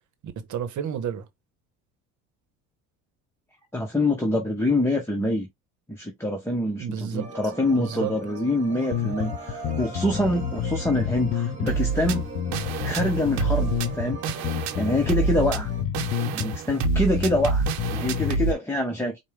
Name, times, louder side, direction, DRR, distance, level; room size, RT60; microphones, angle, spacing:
voice 1, 0.2-1.3 6.8-8.1, right 8 dB, 55° right, 1.1 m, -32 dB
voice 2, 3.7-5.5 5.9-12.2 12.8-14.2 14.7-15.7 16.3-17.6 17.9-19.2, left 1 dB, 5° left, 1.1 m, -25 dB
sound 1, 7.2-15.8, right 3 dB, 20° right, 2.0 m, -40 dB
sound 2, 8.9-18.5, left 9 dB, 65° left, 0.6 m, -29 dB
sound 3, 11.7-18.5, right 7 dB, 80° right, 0.9 m, -28 dB
4.6 x 2.4 x 3.3 m
supercardioid pair, 100°, 35 cm